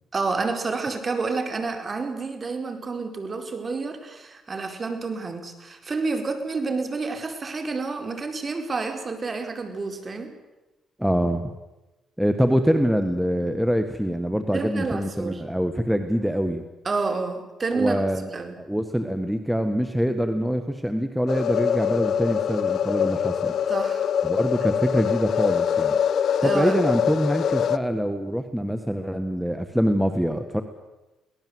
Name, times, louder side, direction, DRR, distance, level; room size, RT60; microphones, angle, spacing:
voice 1, 0.1-10.3 14.5-15.4 16.8-18.0 18.3-18.6 23.7-24.1 26.4-26.8, right 4 dB, 35° right, 6 dB, 4.4 m, -29 dB
voice 2, 11.0-11.5 12.2-16.6 17.7-18.3 18.6-23.5 24.2-26.0 26.4-30.6, equal, 5° right, 7 dB, 1.7 m, -24 dB
sound 1, 21.3-27.8, left 8 dB, 65° left, 0.8 m, -24 dB
24.0 x 18.0 x 8.0 m, 1.0 s
cardioid pair, 90°, 0 cm